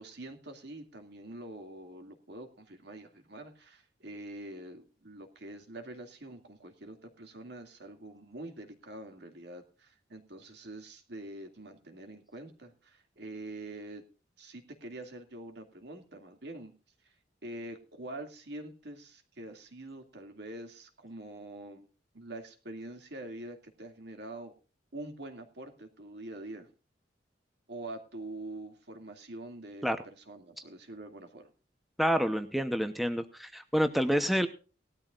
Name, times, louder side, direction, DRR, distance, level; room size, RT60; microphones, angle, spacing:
voice 1, 0.0-14.0 14.4-16.7 17.0-17.1 17.4-21.9 22.1-24.5 24.9-26.7 27.7-31.5, right 1 dB, 65° right, 5 dB, 2.3 m, -45 dB
voice 2, 32.0-34.5, equal, ahead, 8 dB, 0.8 m, -28 dB
18.5 x 12.5 x 2.4 m, 0.34 s
head